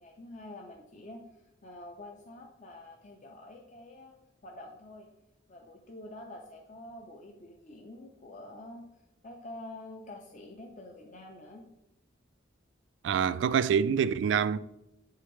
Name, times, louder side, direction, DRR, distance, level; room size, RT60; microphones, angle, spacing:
voice 1, 0.0-5.1 5.5-8.8 9.2-11.7, left 1 dB, 40° left, 0.6 m, -47 dB
voice 2, 13.0-14.6, right 7 dB, 70° right, 0.3 m, -26 dB
7.8 x 4.8 x 3.1 m
head